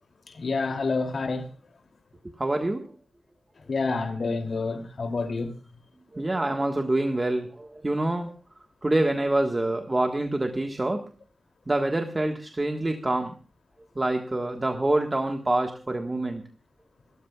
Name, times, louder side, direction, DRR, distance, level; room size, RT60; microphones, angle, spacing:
voice 1, 0.3-1.5 3.7-5.5, left 3 dB, 60° left, 2.9 m, -28 dB
voice 2, 2.4-2.9 6.1-8.3 8.8-11.1 11.7-13.3 13.9-16.5, right 2 dB, 20° right, 1.5 m, -26 dB
28.0 x 13.5 x 2.4 m
wide cardioid pair, 140°, 0 cm